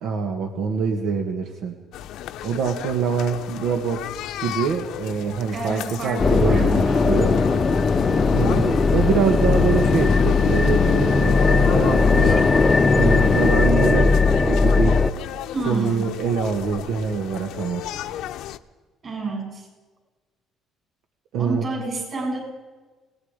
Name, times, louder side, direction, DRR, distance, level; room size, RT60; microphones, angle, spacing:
voice 1, 0.0-1.8 2.4-4.1 4.4-7.4 8.3-12.5 13.0-14.1 14.5-15.0 15.7-17.9 21.3-21.7, right 6 dB, 75° right, 4 dB, 1.9 m, -25 dB
sound 1, 1.9-18.6, left 12 dB, 75° left, 0.9 m, -36 dB
voice 2, 5.5-7.2 12.2-12.4 15.5-16.1 19.0-19.7 21.4-22.4, right 2 dB, 35° right, 1 dB, 7.7 m, -30 dB
sound 2, 6.2-13.6, left 8 dB, 40° left, 0.6 m, -24 dB
sound 3, 6.2-15.1, left 3 dB, 15° left, 0.8 m, -19 dB
26.5 x 19.5 x 5.2 m, 1.3 s
cardioid pair, 150°, 0 cm